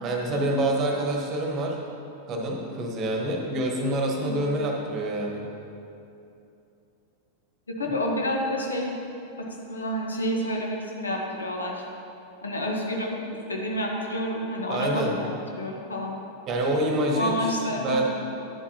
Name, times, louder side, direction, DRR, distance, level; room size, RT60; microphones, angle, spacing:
voice 1, 0.0-1.8 2.3-5.5 14.7-15.2 16.5-18.0, right 1 dB, 35° right, 1 dB, 1.1 m, -27 dB
voice 2, 7.7-8.9 9.4-11.8 12.4-13.2 13.5-16.2 17.1-18.0, equal, 75° left, 0 dB, 1.0 m, -29 dB
10.5 x 7.1 x 2.8 m, 2.7 s
figure-of-eight pair, 90°, 0 cm